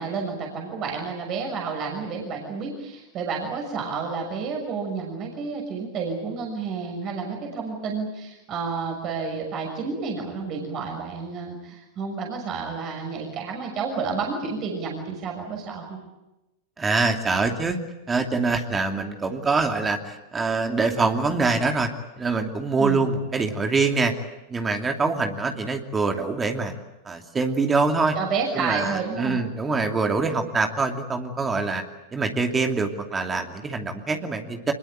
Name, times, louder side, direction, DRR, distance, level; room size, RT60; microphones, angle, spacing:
voice 1, 0.0-16.0 22.8-23.1 28.1-29.4, right 5 dB, 40° right, 1 dB, 6.4 m, -30 dB
voice 2, 16.8-17.8 18.1-21.9 22.2-24.1 24.5-26.7 27.1-28.2 28.5-31.8 32.1-34.7, right 3 dB, 20° right, 4 dB, 2.7 m, -24 dB
25.0 x 21.5 x 9.2 m, 0.97 s
hypercardioid pair, 90°, 0 cm